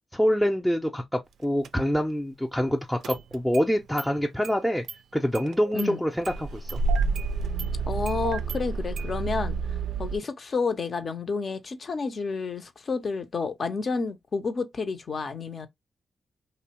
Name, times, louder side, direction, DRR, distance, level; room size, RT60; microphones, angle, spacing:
voice 1, 0.1-4.8 5.1-6.8, equal, ahead, 0.5 m, -26 dB
Engine starting, 1.6-1.7 3.0-3.7 4.0-4.1 4.4-4.6 4.9-5.0 5.3-5.9 6.2-10.2, right 4 dB, 80° right, 0.3 m, -29 dB
voice 2, 7.9-9.5 10.0-15.7, left 4 dB, 55° left, 0.6 m, -30 dB
2.7 x 2.0 x 2.9 m
supercardioid pair, 55°, 0 cm